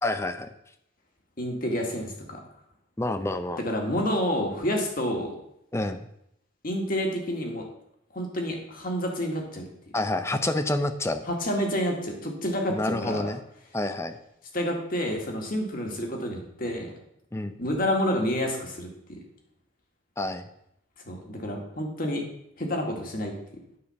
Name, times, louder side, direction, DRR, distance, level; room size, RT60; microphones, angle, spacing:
voice 1, 0.0-0.5 3.0-3.6 5.7-6.1 9.9-11.3 12.7-13.4 13.7-14.2 17.3-17.5 20.2-20.5, left 1 dB, 15° left, 9 dB, 0.5 m, -28 dB
voice 2, 1.4-2.4 3.6-5.3 6.6-7.6 8.1-9.7 11.3-13.3 14.5-16.9 17.6-19.2 21.1-22.2 22.6-23.3, equal, 45° left, 1 dB, 1.9 m, -29 dB
9.5 x 5.0 x 7.1 m, 0.77 s
head